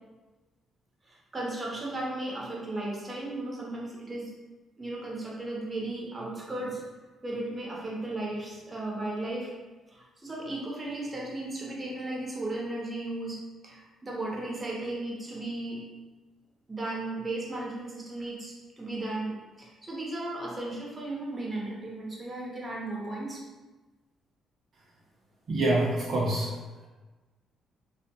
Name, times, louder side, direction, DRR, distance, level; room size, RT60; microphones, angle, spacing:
voice 1, 1.0-4.3 4.8-6.8 7.2-9.5 9.9-15.8 16.7-23.4, right 2 dB, 25° right, -4 dB, 0.7 m, -35 dB
voice 2, 25.5-26.5, right 1 dB, 55° right, -5 dB, 0.5 m, -26 dB
2.5 x 2.0 x 2.8 m, 1.2 s
cardioid pair, 90°, 0 cm